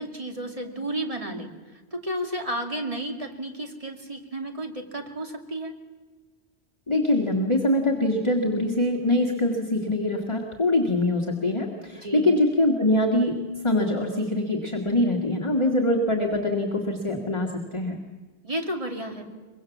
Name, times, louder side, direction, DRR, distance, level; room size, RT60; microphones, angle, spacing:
voice 1, 0.0-1.5 1.9-5.7 11.9-12.3 18.4-19.3, right 1 dB, 30° right, 3 dB, 2.6 m, -32 dB
voice 2, 6.9-13.4 13.6-18.0, left 1 dB, 25° left, 1 dB, 1.9 m, -23 dB
24.0 x 22.0 x 7.2 m, 1.3 s
omnidirectional pair, 1.1 m